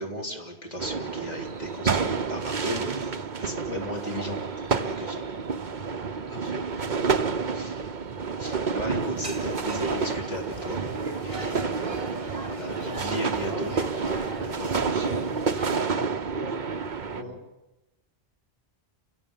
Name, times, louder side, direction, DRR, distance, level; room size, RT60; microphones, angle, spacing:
voice 1, 0.0-3.1 3.4-5.3 7.5-7.8 8.4-10.8 11.2-14.9 17.1-17.4, equal, 40° left, 0 dB, 4.0 m, -36 dB
sound 1, 0.8-17.2, right 5 dB, 45° right, 1.1 m, -29 dB
voice 2, 3.7-4.1 6.3-7.3 12.7-13.6 14.7-15.7 16.2-16.5 17.1-17.4, equal, 65° right, 0 dB, 6.3 m, -40 dB
sound 2, 9.0-15.7, equal, 30° right, 2.3 m, -41 dB
sound 3, 9.5-9.6 10.0-11.0 11.4-12.5 12.8-15.2, right 3 dB, 15° left, 3.0 m, -43 dB
30.0 x 17.5 x 7.5 m, 1.0 s
omnidirectional pair, 1.1 m